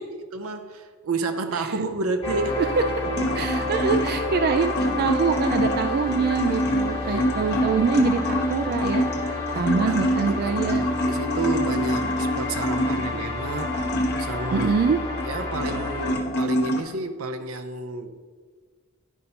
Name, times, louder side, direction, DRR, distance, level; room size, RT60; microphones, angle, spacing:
voice 1, 0.3-2.6 3.2-3.7 7.0-7.8 9.5-13.8 14.2-14.7 15.2-18.2, right 3 dB, 85° right, 7 dB, 0.6 m, -31 dB
sound 1, 2.2-16.1, left 2 dB, 30° left, 1.3 m, -29 dB
sound 2, 2.6-16.8, equal, 50° left, 1.0 m, -27 dB
voice 2, 3.3-10.8 14.5-15.0, right 5 dB, 45° right, 8 dB, 0.3 m, -25 dB
11.0 x 5.3 x 2.9 m, 1.5 s
head